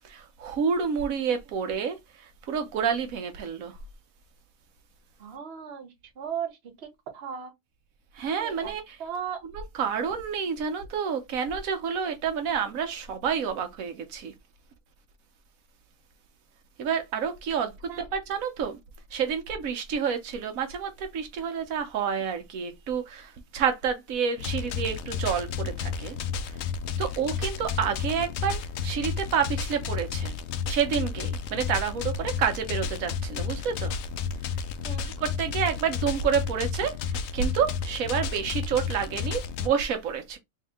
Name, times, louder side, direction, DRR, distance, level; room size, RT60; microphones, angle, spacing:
voice 1, 0.0-3.8 8.1-9.0 9.5-14.3 16.8-18.8 19.1-26.2 26.5-26.6 27.0-30.3 30.7-33.9 35.2-40.4, right 7 dB, 85° right, 1.2 m, -29 dB
voice 2, 5.2-7.5 8.4-8.7 9.0-9.4 17.9-18.0 34.8-35.2, right 8 dB, 55° right, 1.2 m, -37 dB
sound 1, 24.4-39.7, left 6 dB, 65° left, 0.7 m, -32 dB
3.4 x 2.8 x 3.4 m
omnidirectional pair, 1.4 m